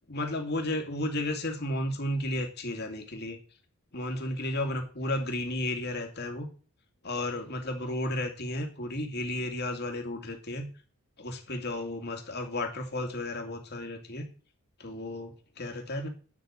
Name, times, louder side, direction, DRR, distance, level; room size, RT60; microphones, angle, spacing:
voice 1, 0.1-3.4 3.9-6.5 7.0-10.7 11.2-14.3 14.8-16.1, left 1 dB, 45° left, 4 dB, 2.4 m, -33 dB
10.5 x 6.2 x 8.2 m, 0.39 s
head